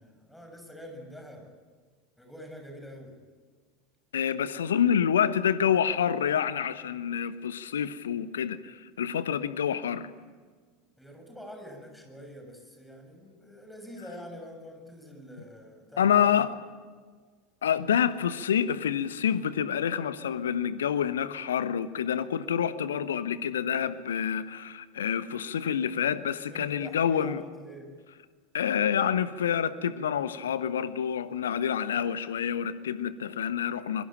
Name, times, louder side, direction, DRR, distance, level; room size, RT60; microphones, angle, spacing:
voice 1, 0.0-1.5 2.2-3.2 11.0-16.5 26.5-27.9, equal, 5° left, 7.1 m, -45 dB
voice 2, 4.1-10.1 16.0-16.5 17.6-27.4 28.5-34.0, left 8 dB, 70° left, 1.2 m, -27 dB
25.0 x 23.0 x 9.1 m
figure-of-eight pair, 75°, 0 cm